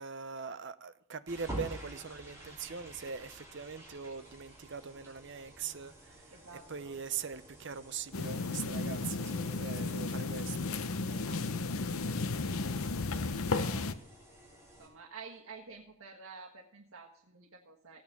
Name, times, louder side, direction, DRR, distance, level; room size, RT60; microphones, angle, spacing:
voice 1, 0.0-6.3 6.7-10.7, right 6 dB, 55° right, 0.7 m, -42 dB
sound 1, 1.3-14.9, right 1 dB, 15° right, 3.3 m, -50 dB
voice 2, 6.3-7.0 11.1-12.8 13.5-14.0 14.8-18.0, right 4 dB, 75° right, 1.4 m, -51 dB
sound 2, 8.1-13.9, left 3 dB, 75° left, 0.8 m, -34 dB
15.5 x 8.6 x 5.8 m
head